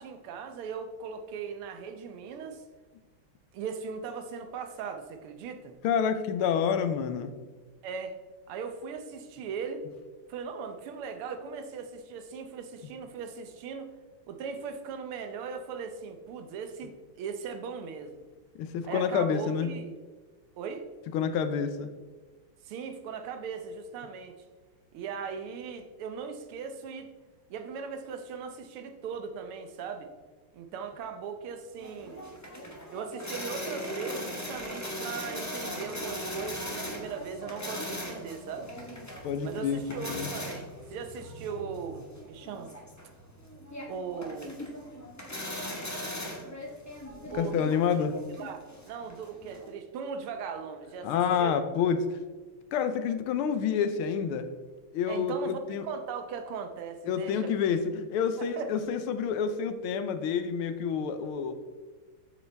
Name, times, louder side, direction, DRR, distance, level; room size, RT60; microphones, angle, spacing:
voice 1, 0.0-2.6 3.5-5.8 7.8-8.2 8.5-9.8 10.3-13.9 14.3-18.2 18.8-19.9 20.6-20.9 22.6-24.4 24.9-27.1 27.5-30.1 30.5-32.3 32.9-38.7 39.4-42.7 43.9-44.7 47.3-47.6 48.4-48.6 48.9-51.1 51.4-51.6 55.1-57.5 58.4-58.7, right 6 dB, 85° right, 7 dB, 1.7 m, -38 dB
voice 2, 5.8-7.3 18.6-19.7 21.1-21.9 39.2-40.3 47.3-48.2 51.0-52.2 52.7-54.4 54.9-55.9 57.1-61.5, left 7 dB, 85° left, 10 dB, 1.5 m, -28 dB
sound 1, 31.8-49.7, equal, 15° left, 0.6 m, -39 dB
8.0 x 7.0 x 3.4 m, 1.3 s
omnidirectional pair, 2.3 m